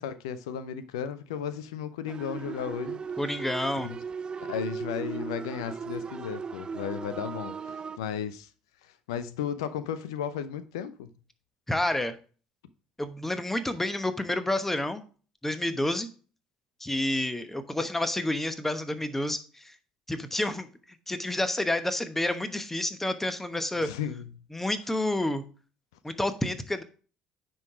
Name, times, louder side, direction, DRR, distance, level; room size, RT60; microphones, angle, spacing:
voice 1, 0.0-3.0 3.8-4.0 4.4-8.5 8.8-11.1 23.8-24.3, left 8 dB, 80° left, 0.5 m, -35 dB
sound 1, 2.1-8.0, right 6 dB, 30° right, 0.4 m, -37 dB
voice 2, 3.2-3.9 11.7-12.2 13.0-15.0 15.4-16.1 16.8-19.7 20.1-20.7 21.1-23.9 24.5-25.4 26.0-26.8, left 1 dB, 10° left, 1.0 m, -29 dB
9.6 x 3.9 x 4.8 m
hypercardioid pair, 60°, 3 cm